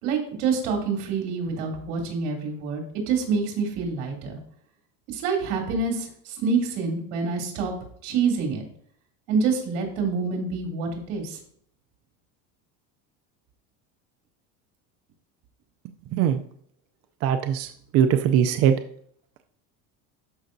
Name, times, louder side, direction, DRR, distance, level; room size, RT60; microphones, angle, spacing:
voice 1, 0.0-4.4 5.1-7.7 8.0-8.6 9.3-11.4, right 5 dB, 80° right, 0 dB, 3.0 m, -27 dB
voice 2, 17.2-17.7 17.9-18.7, right 9 dB, 45° right, 7 dB, 0.4 m, -20 dB
12.5 x 5.4 x 2.6 m, 0.63 s
cardioid pair, 155°, 36 cm